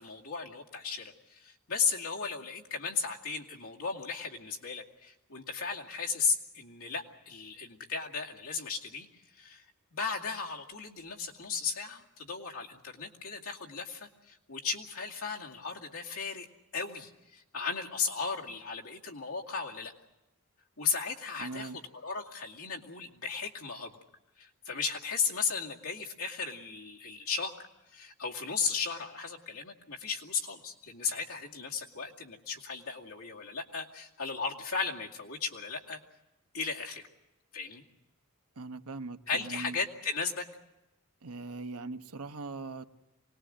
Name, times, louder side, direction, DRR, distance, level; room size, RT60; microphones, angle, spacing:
voice 1, 0.0-9.1 9.3-9.6 9.9-16.5 16.7-19.9 20.8-21.7 22.0-23.9 24.4-27.6 27.9-36.0 36.5-37.1 37.5-37.8 39.3-40.5, left 5 dB, 75° left, 2.4 m, -35 dB
voice 2, 21.4-21.8 38.6-39.8 41.2-42.8, right 3 dB, 85° right, 1.0 m, -40 dB
25.0 x 20.0 x 7.6 m
head